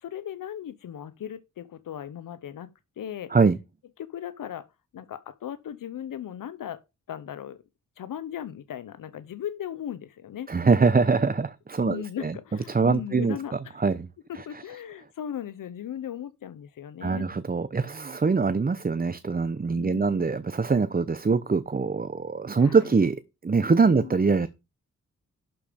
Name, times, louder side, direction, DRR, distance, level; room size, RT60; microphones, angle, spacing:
voice 1, 0.0-2.7 3.0-3.3 4.0-4.7 4.9-6.8 7.1-7.6 8.0-10.5 11.8-13.8 14.3-17.3 19.8-20.2 22.6-22.9 23.9-24.1, left 10 dB, 85° left, 0.7 m, -37 dB
voice 2, 10.5-12.4 12.7-14.1 14.3-14.4 17.0-24.5, right 4 dB, 30° right, 0.8 m, -23 dB
11.5 x 5.1 x 5.2 m
cardioid pair, 65°, 32 cm